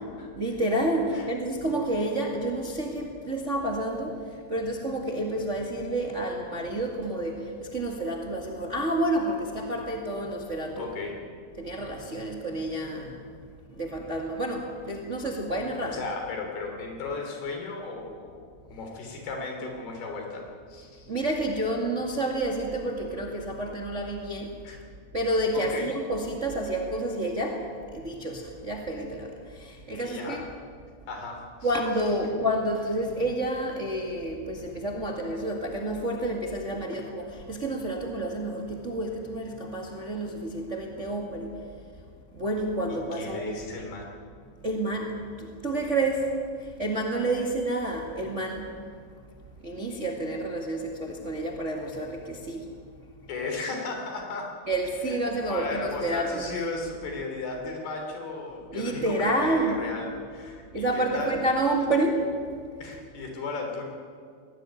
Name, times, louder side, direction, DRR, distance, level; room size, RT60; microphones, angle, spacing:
voice 1, 0.4-10.9 11.6-13.3 13.7-16.0 21.1-24.5 25.1-30.4 31.6-41.6 42.3-43.6 44.6-46.3 46.6-48.7 49.6-52.7 54.7-56.4 58.7-59.8 60.7-62.2, right 1 dB, 30° right, 1 dB, 1.5 m, -29 dB
voice 2, 10.8-11.2 15.7-18.4 18.7-21.1 24.6-24.8 25.5-25.9 29.8-30.4 31.1-31.8 32.0-32.2 42.9-44.1 53.3-54.5 55.1-55.2 55.5-61.4 62.8-63.8, left 3 dB, 80° left, 2 dB, 5.5 m, -35 dB
21.0 x 17.5 x 9.5 m, 2.1 s
omnidirectional pair, 4.5 m